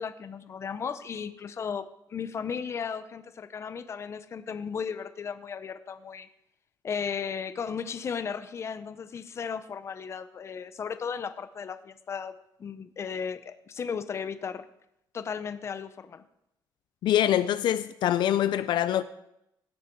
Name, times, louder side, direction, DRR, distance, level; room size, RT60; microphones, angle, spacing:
voice 1, 0.0-6.3 6.8-12.3 12.6-14.7 15.1-16.2, left 6 dB, 35° left, 0.7 m, -35 dB
voice 2, 17.0-19.0, left 11 dB, 75° left, 0.5 m, -24 dB
16.5 x 8.2 x 4.6 m
cardioid pair, 160°, 8 cm